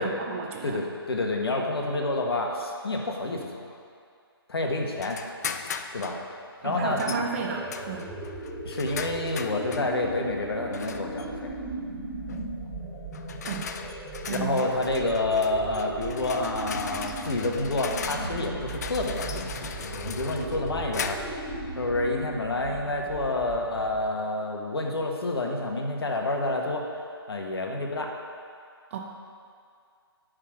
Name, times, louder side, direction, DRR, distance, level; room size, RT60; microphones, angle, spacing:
voice 1, 0.0-0.8 6.6-8.1 13.4-13.7 14.3-14.7 28.9-29.0, right 5 dB, 30° right, 1 dB, 0.6 m, -33 dB
voice 2, 0.6-3.8 4.5-5.2 5.9-6.2 6.6-7.2 8.6-11.6 14.2-21.2 21.8-26.8 27.3-28.1, left 2 dB, 70° left, 1 dB, 1.4 m, -28 dB
sound 1, 5.0-6.2 7.0-7.3 7.7-9.9 10.7-11.3 12.3-12.5 13.1-21.4, left 6 dB, 40° left, 0.4 m, -38 dB
sound 2, 6.7-24.2, right 2 dB, 10° left, 2.1 m, -38 dB
9.6 x 3.8 x 6.4 m, 2.3 s
figure-of-eight pair, 150°, 13 cm